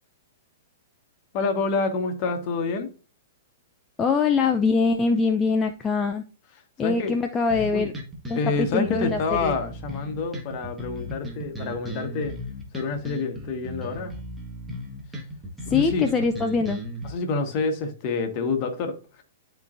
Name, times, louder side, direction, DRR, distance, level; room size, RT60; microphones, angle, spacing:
voice 1, 1.3-2.9 6.8-7.2 7.7-7.9 8.3-12.3 12.7-14.1 15.6-16.1 17.0-19.2, left 4 dB, 40° left, 1.6 m, -27 dB
voice 2, 4.0-6.2 6.8-7.9 8.3-9.5 15.7-16.8, left 4 dB, 20° left, 0.6 m, -23 dB
sound 1, 7.5-17.1, equal, 10° right, 1.7 m, -36 dB
11.5 x 4.6 x 2.6 m
figure-of-eight pair, 105°, 0 cm